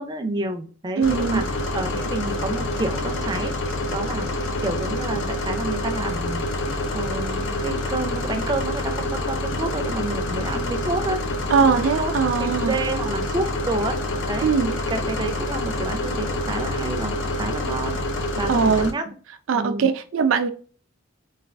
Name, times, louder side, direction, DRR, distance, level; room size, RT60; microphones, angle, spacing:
voice 1, 0.0-1.5 1.7-3.5 3.9-4.3 4.6-6.4 6.9-11.2 12.0-12.1 12.4-14.0 14.3-17.1 17.4-18.0 18.4-19.1 19.5-19.9, right 2 dB, 20° right, 0.4 m, -29 dB
sound 1, 1.0-18.9, left 1 dB, 75° left, 0.5 m, -27 dB
voice 2, 1.0-1.4 11.5-12.7 14.4-14.7 18.5-18.9 19.5-20.5, right 5 dB, 90° right, 0.4 m, -20 dB
3.2 x 2.3 x 2.4 m
head